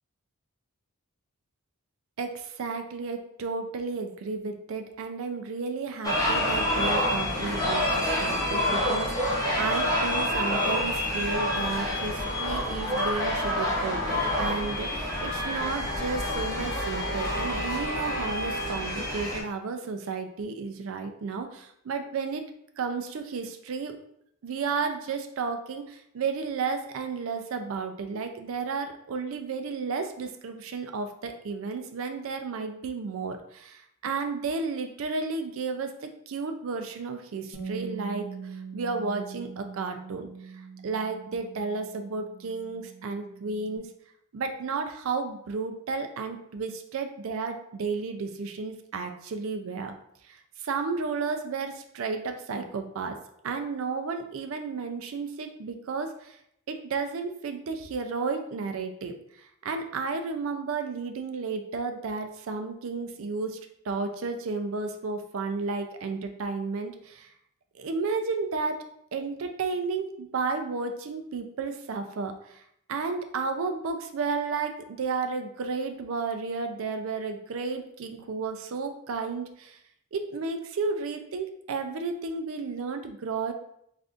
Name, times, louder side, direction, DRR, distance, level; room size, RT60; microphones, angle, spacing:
voice 1, 2.2-22.4 22.8-23.9 24.4-38.3 38.7-40.3 40.8-43.9 44.3-49.9 50.3-53.2 53.4-56.4 56.7-59.1 59.6-63.6 63.9-67.3 67.8-68.8 69.1-72.3 72.9-79.8 80.1-83.5, right 4 dB, 60° right, 6 dB, 0.4 m, -32 dB
sound 1, 6.0-19.4, left 1 dB, 15° left, 0.7 m, -28 dB
Bass guitar, 37.5-43.8, right 6 dB, 90° left, 0.8 m, -42 dB
3.5 x 2.5 x 2.5 m, 0.73 s
head